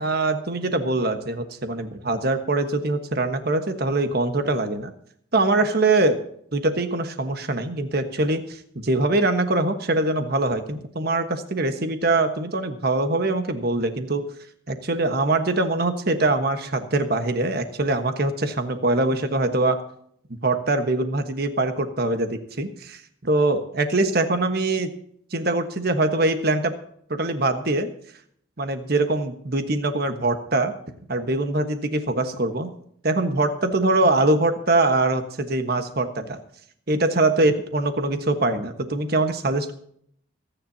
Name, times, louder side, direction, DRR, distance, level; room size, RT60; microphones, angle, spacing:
voice 1, 0.0-4.9 5.3-6.2 6.5-14.2 14.7-19.8 20.4-24.9 25.3-26.7 27.1-27.9 28.6-30.7 31.1-32.7 33.0-36.4 36.9-39.7, right 2 dB, 50° right, 8 dB, 1.3 m, -23 dB
26.5 x 10.0 x 2.8 m, 0.65 s
head